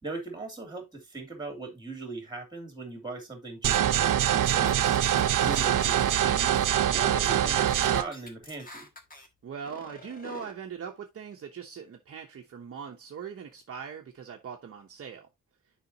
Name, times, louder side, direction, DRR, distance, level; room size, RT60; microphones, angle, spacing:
voice 1, 0.0-4.9 5.4-8.9, right 3 dB, 15° right, 2.9 m, -39 dB
sound 1, 3.6-8.0, right 11 dB, 80° right, 0.8 m, -24 dB
sound 2, 4.7-6.2 6.5-7.4 7.7-9.3 9.6-10.5, left 2 dB, 25° left, 1.5 m, -47 dB
voice 2, 9.4-15.3, right 7 dB, 45° right, 1.0 m, -41 dB
10.0 x 5.1 x 2.8 m
wide cardioid pair, 175°, 31 cm